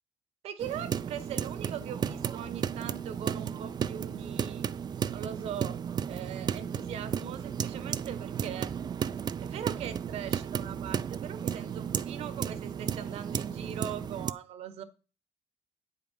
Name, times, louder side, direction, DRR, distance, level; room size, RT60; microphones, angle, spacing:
voice 1, 0.4-4.7 5.1-5.8 6.1-8.7 9.4-14.8, right 9 dB, 65° right, 1.4 m, -40 dB
sound 1, 0.6-14.3, right 8 dB, 40° right, 0.5 m, -34 dB
8.5 x 5.2 x 7.3 m
cardioid pair, 90°, 11 cm